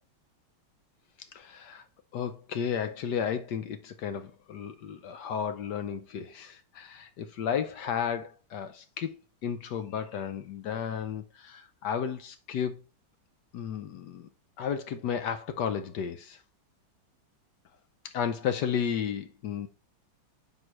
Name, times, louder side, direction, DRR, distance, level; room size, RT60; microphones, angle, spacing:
voice 1, 1.3-1.8 2.1-9.2 9.4-12.8 13.5-14.3 14.6-16.4 18.0-19.7, left 7 dB, 70° left, 1.1 m, -33 dB
9.4 x 5.4 x 3.1 m
omnidirectional pair, 2.3 m